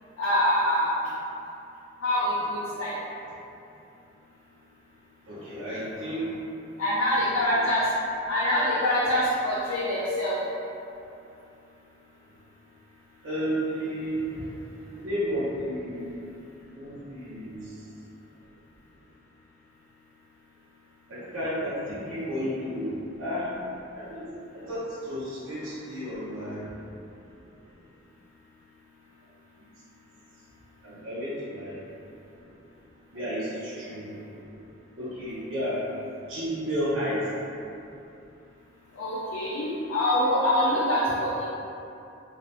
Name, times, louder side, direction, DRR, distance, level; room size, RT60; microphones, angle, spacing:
voice 1, 0.2-1.0 2.0-2.9 6.8-7.9 8.3-10.4 38.9-41.5, left 1 dB, 80° left, -9 dB, 0.4 m, -25 dB
voice 2, 5.3-6.3 13.2-14.4 14.9-16.2 16.8-17.7 21.1-23.5 24.0-24.3 24.5-26.7 30.8-31.8 33.1-34.3 35.0-35.8 36.3-37.3, equal, 75° right, -12 dB, 0.7 m, -32 dB
2.4 x 2.0 x 2.8 m, 2.7 s
head